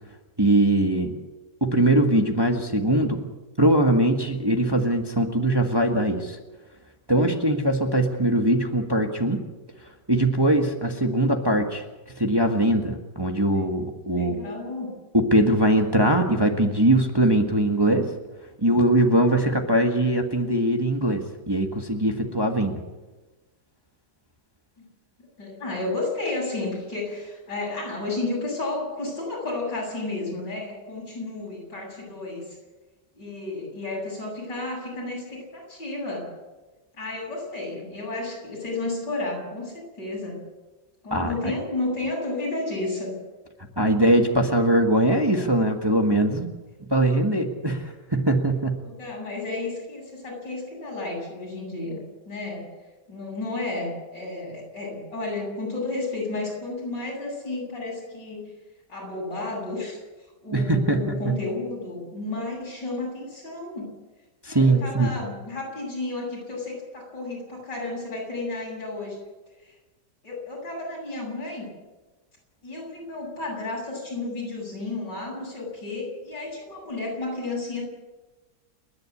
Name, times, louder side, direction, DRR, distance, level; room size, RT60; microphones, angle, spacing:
voice 1, 0.4-1.2 1.6-3.3 3.6-6.4 7.1-9.4 10.1-11.8 12.2-14.4 15.1-18.1 18.6-22.8 41.1-41.5 43.8-46.5 46.9-48.8 60.5-61.3 64.4-65.1, right 1 dB, 15° right, 4 dB, 1.5 m, -21 dB
voice 2, 14.0-14.9 24.8-24.9 25.4-32.6 33.1-36.3 37.0-40.4 41.0-43.1 48.8-52.7 53.1-58.5 58.9-60.0 60.4-63.9 64.5-69.2 69.6-69.7 70.2-71.7 72.6-77.8, left 2 dB, 85° left, -3 dB, 8.9 m, -32 dB
30.0 x 10.5 x 8.5 m, 1.2 s
omnidirectional pair, 1.9 m